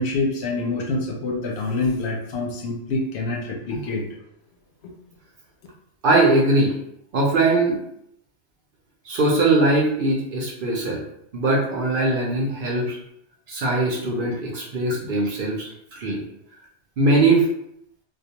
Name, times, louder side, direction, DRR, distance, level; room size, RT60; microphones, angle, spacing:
voice 1, 0.0-4.0, left 2 dB, 70° left, 0 dB, 0.8 m, -26 dB
voice 2, 6.0-6.7 7.1-7.8 9.1-11.0 11.3-13.0 13.5-16.2 17.0-17.4, right 2 dB, 60° right, -3 dB, 0.7 m, -21 dB
2.3 x 2.2 x 2.7 m, 0.76 s
omnidirectional pair, 1.2 m